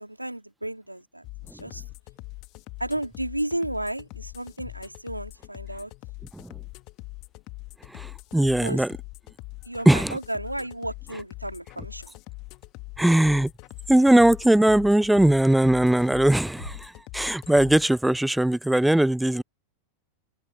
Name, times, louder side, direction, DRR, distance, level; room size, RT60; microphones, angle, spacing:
voice 1, 0.0-1.8 2.8-5.9 8.6-8.8 9.6-12.2, right 1 dB, 85° right, 3.1 m, -33 dB
sound 1, 1.2-17.9, left 23 dB, 40° left, 2.2 m, -42 dB
voice 2, 7.9-8.9 9.9-10.2 13.0-13.5 13.9-19.4, right 1 dB, 5° right, 0.3 m, -20 dB
figure-of-eight pair, 90°, 0 cm